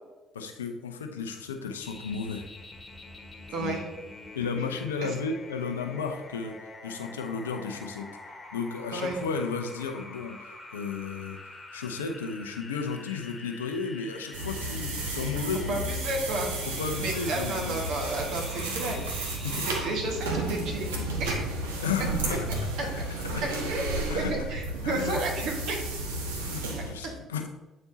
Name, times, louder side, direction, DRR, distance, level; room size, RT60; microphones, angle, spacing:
voice 1, 0.3-2.4 3.6-3.8 4.4-6.6 6.8-8.1 8.5-11.4 11.7-15.8 16.8-17.7 19.4-19.7 21.8-22.5 22.8-23.0 23.3-23.4 24.1-24.3 24.8-25.2 26.3-27.5, left 5 dB, 85° left, 5 dB, 0.6 m, -33 dB
sound 1, 1.8-20.0, left 2 dB, 20° left, 1.2 m, -46 dB
voice 2, 3.5-3.9 5.0-5.1 8.9-9.2 15.7-16.5 17.0-19.1 19.4-21.4 22.3-22.4 22.8-22.9 23.4-25.8 27.0-27.1, right 2 dB, 65° right, 1 dB, 1.3 m, -32 dB
sound 2, 14.3-26.9, right 2 dB, 80° right, 0.8 m, -32 dB
8.5 x 4.3 x 2.7 m, 1.1 s
figure-of-eight pair, 50°, 0 cm